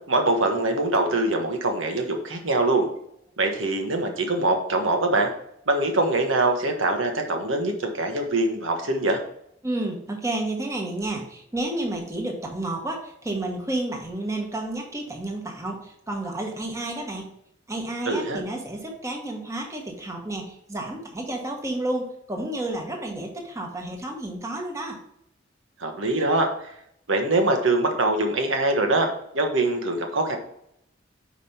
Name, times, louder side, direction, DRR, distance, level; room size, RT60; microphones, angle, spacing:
voice 1, 0.1-2.9 3.4-5.3 5.7-9.2 18.0-18.4 25.8-26.5 27.1-29.1 29.3-30.4, right 2 dB, 85° right, 3 dB, 1.3 m, -23 dB
voice 2, 9.6-17.3 17.7-25.0, right 1 dB, 15° right, 1 dB, 1.3 m, -31 dB
5.3 x 5.0 x 5.6 m, 0.74 s
head